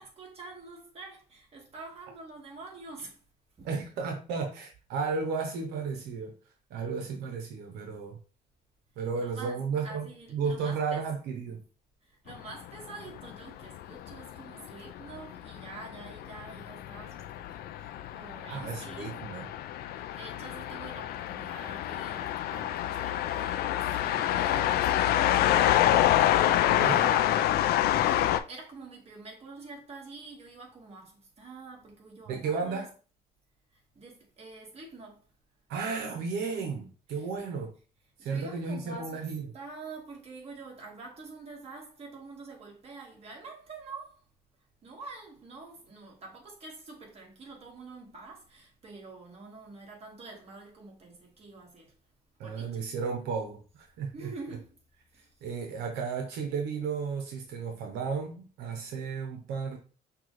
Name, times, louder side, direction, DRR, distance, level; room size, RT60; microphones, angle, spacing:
voice 1, 0.0-3.2 3.6-3.7 9.2-11.0 12.0-19.2 20.2-26.0 26.8-27.2 27.8-32.9 33.9-35.2 37.1-37.3 38.2-44.2 44.8-51.9 52.4-52.8 54.1-54.8 55.1-55.3, right 3 dB, 35° right, 1.8 m, -47 dB
voice 2, 3.6-6.3 6.7-8.2 9.0-10.1 10.3-11.6 18.5-19.5 26.7-27.1 32.3-32.9 35.7-37.7 38.2-39.5 52.4-54.3 55.4-59.8, right 5 dB, 85° right, 0.8 m, -33 dB
sound 1, 12.3-28.4, left 12 dB, 65° left, 0.4 m, -27 dB
5.8 x 2.4 x 3.1 m
cardioid pair, 110°, 17 cm